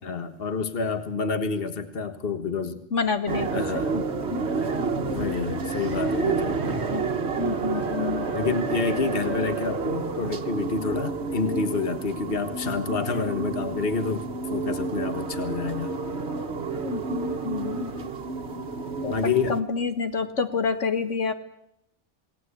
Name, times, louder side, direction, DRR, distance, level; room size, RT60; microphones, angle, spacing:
voice 1, 0.0-2.8 3.5-4.0 5.0-6.9 8.3-15.9 19.1-19.6, left 4 dB, 50° left, 9 dB, 1.7 m, -28 dB
voice 2, 2.9-4.0 4.3-4.6 6.9-7.1 7.4-8.3 16.8-17.9 19.0-19.1 19.5-21.3, left 5 dB, 75° left, 8 dB, 2.0 m, -28 dB
sound 1, 3.3-19.6, right 4 dB, 60° right, 1.6 m, -30 dB
28.0 x 18.5 x 8.4 m, 0.78 s
omnidirectional pair, 1.3 m